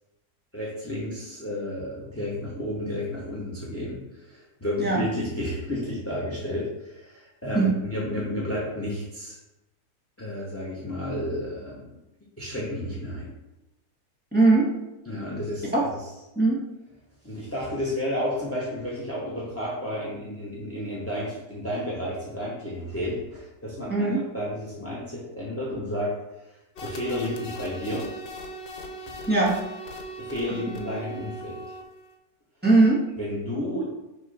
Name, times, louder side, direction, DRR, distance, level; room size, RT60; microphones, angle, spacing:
voice 1, 0.5-9.4 10.2-11.9 12.4-13.3 15.0-15.7 17.2-24.1 24.3-26.1 26.4-28.1 29.0-29.2 30.2-31.8 33.2-33.8, left 1 dB, 10° left, -4 dB, 0.8 m, -32 dB
voice 2, 14.3-14.7 15.7-15.8 16.3-16.6 23.9-24.2 29.3-29.6 32.6-33.0, right 3 dB, 5° right, -5 dB, 1.5 m, -19 dB
sound 1, 26.8-32.1, right 1 dB, 80° left, 1.5 m, -39 dB
6.3 x 3.1 x 5.5 m, 0.97 s
omnidirectional pair, 2.0 m